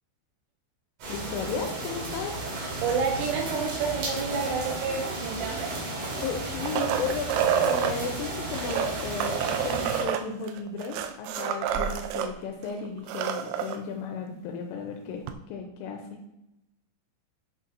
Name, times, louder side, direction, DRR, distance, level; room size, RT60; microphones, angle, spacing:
sound 1, 1.0-10.0, right 2 dB, 55° right, 3.2 m, -34 dB
voice 1, 1.1-2.4 6.2-16.2, left 5 dB, 85° left, 2 dB, 3.3 m, -35 dB
voice 2, 2.8-5.8, right 5 dB, 75° right, -1 dB, 2.6 m, -29 dB
sound 2, 6.0-7.9 8.6-12.3 12.6-12.7 13.0-13.8 15.3-15.4, right 9 dB, 90° right, 3.1 m, -28 dB
8.8 x 5.5 x 2.7 m, 0.86 s
omnidirectional pair, 5.6 m